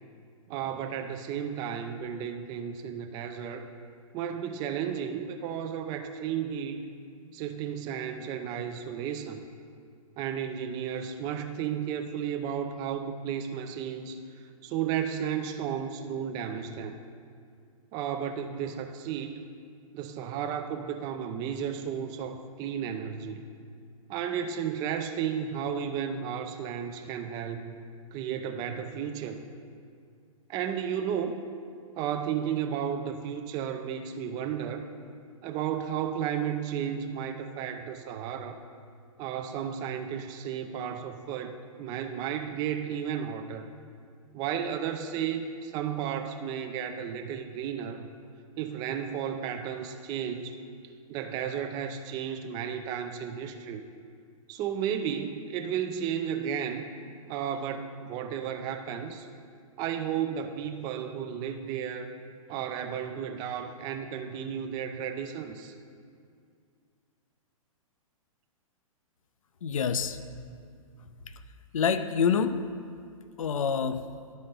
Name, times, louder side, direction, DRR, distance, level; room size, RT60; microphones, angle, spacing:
voice 1, 0.5-3.7 4.1-6.9 7.3-9.4 10.2-14.2 14.6-17.0 17.9-19.4 19.9-23.4 24.1-27.7 28.1-29.4 30.5-31.4 32.0-34.9 35.4-38.6 39.2-43.7 44.3-48.1 48.6-50.6 51.1-53.8 54.5-56.9 57.3-59.3 59.8-62.1 62.5-65.7, right 8 dB, 20° right, 6 dB, 0.4 m, -33 dB
voice 2, 69.6-70.2 71.7-72.6 73.4-74.0, left 6 dB, 65° left, 11 dB, 0.5 m, -26 dB
11.5 x 4.1 x 5.4 m, 2.3 s
figure-of-eight pair, 115°, 18 cm